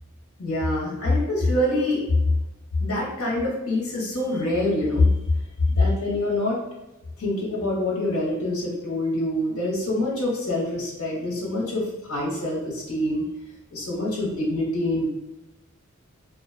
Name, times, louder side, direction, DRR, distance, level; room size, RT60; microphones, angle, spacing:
voice 1, 0.4-2.0 2.8-5.1 5.7-6.6 7.2-13.3 13.7-15.1, left 1 dB, 75° left, -3 dB, 0.8 m, -25 dB
2.4 x 2.2 x 2.5 m, 0.95 s
head